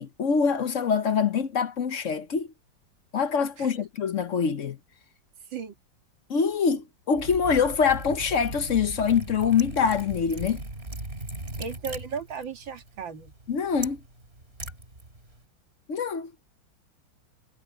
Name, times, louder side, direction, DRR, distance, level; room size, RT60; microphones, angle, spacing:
voice 1, 0.0-2.5 3.1-4.8 6.3-10.6 13.5-14.0 15.9-16.3, left 6 dB, 50° left, 1.0 m, -25 dB
Liquid, 7.1-15.4, right 2 dB, 30° right, 4.1 m, -39 dB
voice 2, 11.6-13.3, right 6 dB, 75° right, 2.6 m, -36 dB
omnidirectional pair, 2.1 m